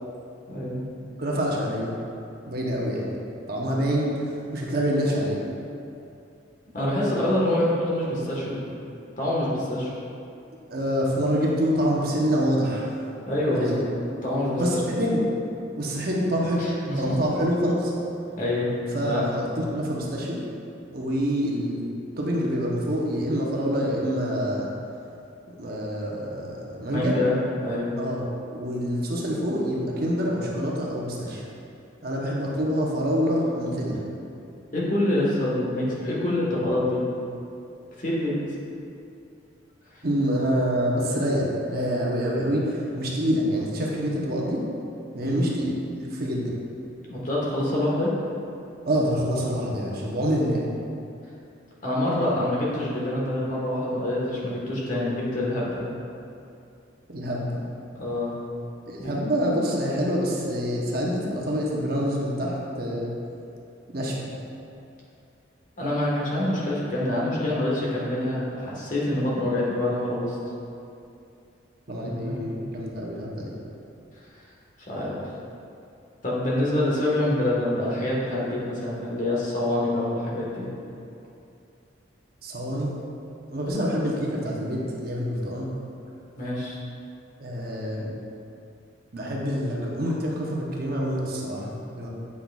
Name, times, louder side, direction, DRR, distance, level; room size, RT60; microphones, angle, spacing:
voice 1, 0.5-0.8 6.7-8.6 9.2-9.9 13.3-13.8 14.2-15.0 16.6-17.1 18.4-18.7 19.0-19.3 26.9-27.3 27.6-27.9 34.7-37.0 38.0-38.4 39.9-40.0 45.2-45.5 47.1-48.1 51.8-55.8 57.9-58.3 59.0-59.1 65.8-70.4 72.2-72.4 74.9-75.1 76.2-80.7 83.7-83.9 86.4-86.8, left 1 dB, 40° left, -6 dB, 1.4 m, -26 dB
voice 2, 1.2-1.9 2.5-3.1 3.5-5.4 10.7-12.9 13.5-13.8 14.6-15.2 15.8-16.6 17.0-17.9 18.9-20.4 20.9-21.9 22.2-24.7 25.6-27.2 28.0-28.2 28.5-31.4 32.0-34.0 40.0-44.6 45.1-45.7 46.0-46.6 48.8-50.7 57.1-57.6 58.9-63.1 63.9-64.3 71.9-73.5 82.4-82.9 83.5-85.7 87.4-88.1 89.1-92.1, equal, 50° right, -3 dB, 0.9 m, -26 dB
8.5 x 6.1 x 2.4 m, 2.6 s
head